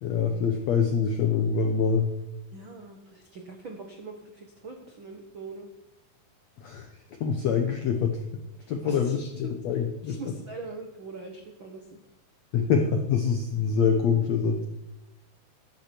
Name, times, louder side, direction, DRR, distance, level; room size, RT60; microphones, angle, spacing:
voice 1, 0.0-2.1 6.6-6.9 7.2-8.1 8.7-10.2 12.5-14.6, left 6 dB, 80° left, 4 dB, 1.5 m, -25 dB
voice 2, 2.5-5.7 8.8-12.0 12.6-12.7, right 3 dB, 90° right, 3 dB, 1.1 m, -43 dB
14.0 x 12.0 x 4.5 m, 0.89 s
omnidirectional pair, 4.6 m